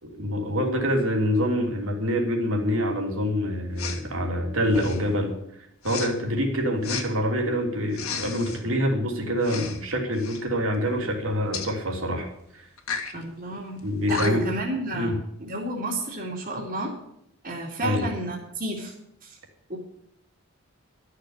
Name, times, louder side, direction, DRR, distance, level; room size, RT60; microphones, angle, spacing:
voice 1, 0.0-5.3 5.8-12.3 12.5-12.7 13.8-14.5 14.9-15.2 17.8-18.0, equal, 70° right, 2 dB, 3.1 m, -26 dB
Respiratory sounds, 3.8-4.0 4.7-5.1 5.8-6.1 6.8-7.1 7.9-8.6 9.4-9.8 10.1-10.4 11.5-11.7 12.8-13.1 13.8-13.9 14.1-14.6, left 6 dB, 85° left, 1.8 m, -33 dB
voice 2, 13.1-13.8 14.1-15.1 15.5-17.0 17.4-18.9 19.7-19.8, right 1 dB, 40° right, -4 dB, 2.5 m, -30 dB
13.0 x 6.8 x 9.7 m, 0.74 s
head